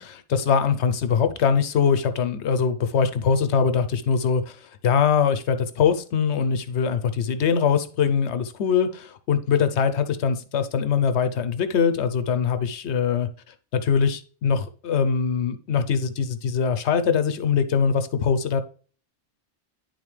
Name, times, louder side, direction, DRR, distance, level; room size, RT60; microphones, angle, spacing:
voice 1, 0.0-13.3 13.7-18.6, left 6 dB, 70° left, 10 dB, 0.9 m, -22 dB
10.5 x 3.9 x 3.3 m, 0.41 s
omnidirectional pair, 1.2 m